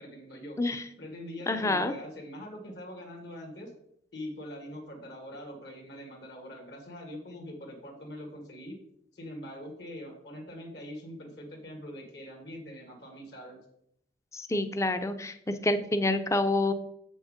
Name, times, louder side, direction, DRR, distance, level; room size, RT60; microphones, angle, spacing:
voice 1, 0.0-0.6 1.0-3.7 4.1-8.8 9.1-13.6, equal, 65° left, 1 dB, 1.9 m, -43 dB
voice 2, 1.5-1.9 14.3-15.3 15.6-16.7, left 2 dB, 15° left, 9 dB, 0.5 m, -27 dB
7.2 x 6.3 x 5.0 m, 0.75 s
head